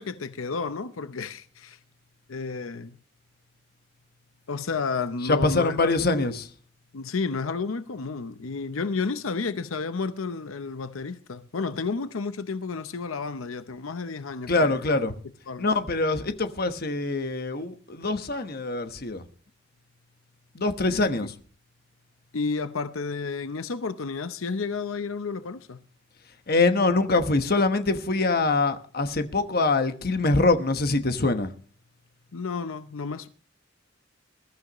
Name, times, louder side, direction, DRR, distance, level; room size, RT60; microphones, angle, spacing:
voice 1, 0.0-1.8 2.3-3.0 4.5-6.4 6.9-15.1 15.5-15.7 20.9-21.3 22.3-25.8 32.3-33.3, left 4 dB, 90° left, 0.7 m, -32 dB
voice 2, 5.2-6.5 14.5-15.1 15.6-19.2 20.5-21.3 26.5-31.5, left 3 dB, 50° left, 1.1 m, -24 dB
21.0 x 13.0 x 3.0 m
head